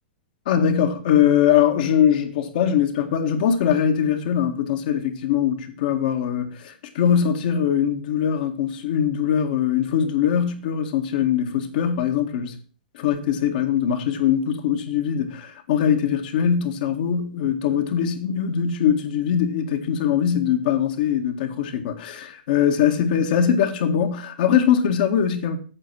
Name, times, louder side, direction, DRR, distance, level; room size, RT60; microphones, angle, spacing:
voice 1, 0.5-12.5 12.9-25.6, left 8 dB, 60° left, 2.0 m, -22 dB
8.9 x 7.1 x 6.2 m
hypercardioid pair, 120°, 5 cm